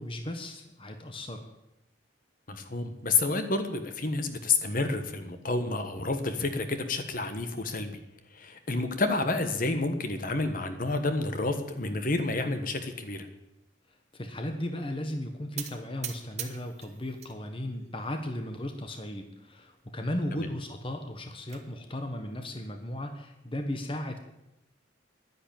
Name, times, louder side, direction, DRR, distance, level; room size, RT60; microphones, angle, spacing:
voice 1, 0.0-1.4 14.1-24.2, left 1 dB, 25° left, 5 dB, 1.2 m, -36 dB
voice 2, 2.5-8.0 8.3-13.3 20.4-20.5, left 3 dB, 45° left, 8 dB, 1.4 m, -29 dB
sound 1, 15.6-17.4 17.7-18.4 18.9-19.0 19.3-19.4 19.8-19.9 21.0-21.6, right 9 dB, 35° right, 1.4 m, -42 dB
11.0 x 10.5 x 9.1 m, 0.92 s
head